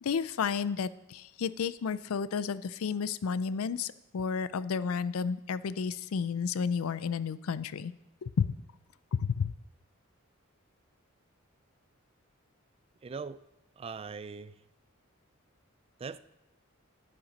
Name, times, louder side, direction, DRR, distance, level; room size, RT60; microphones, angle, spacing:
voice 1, 0.0-7.9 8.2-8.5 9.1-9.5, left 6 dB, 90° left, 0.4 m, -32 dB
voice 2, 13.0-13.4 13.8-14.6 16.0-16.2, right 5 dB, 30° right, 0.3 m, -40 dB
8.9 x 8.7 x 5.3 m
head